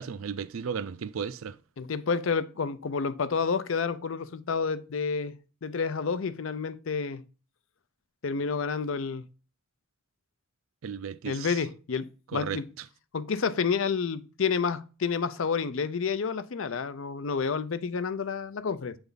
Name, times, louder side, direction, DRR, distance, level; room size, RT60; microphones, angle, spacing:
voice 1, 0.0-1.6 10.8-11.5 12.3-12.6, right 6 dB, 85° right, 0.4 m, -34 dB
voice 2, 1.8-7.2 8.2-9.3 11.2-12.6 13.1-19.0, left 5 dB, 70° left, 0.5 m, -29 dB
8.1 x 3.5 x 3.9 m
head